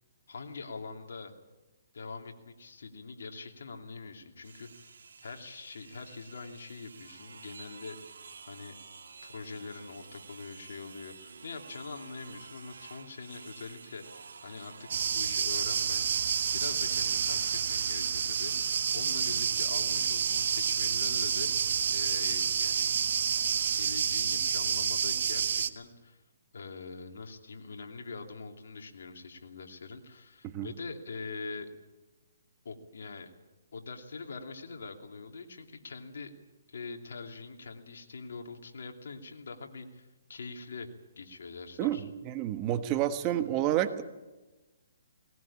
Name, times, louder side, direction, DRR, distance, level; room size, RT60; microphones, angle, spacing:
voice 1, 0.3-1.3 1.9-8.2 8.5-8.8 9.2-16.1 16.5-23.0 23.7-26.2 26.5-31.7 32.6-33.3 33.7-36.3 36.7-40.9 41.2-42.1, left 4 dB, 70° left, 4 dB, 2.8 m, -43 dB
sound 1, 4.4-23.8, right 5 dB, 75° right, 2.0 m, -50 dB
sound 2, 14.9-25.7, right 7 dB, 60° right, 1.1 m, -29 dB
voice 2, 42.2-44.0, right 12 dB, 25° right, 10 dB, 1.2 m, -29 dB
19.5 x 18.5 x 8.7 m, 1.1 s
hypercardioid pair, 150°, 0 cm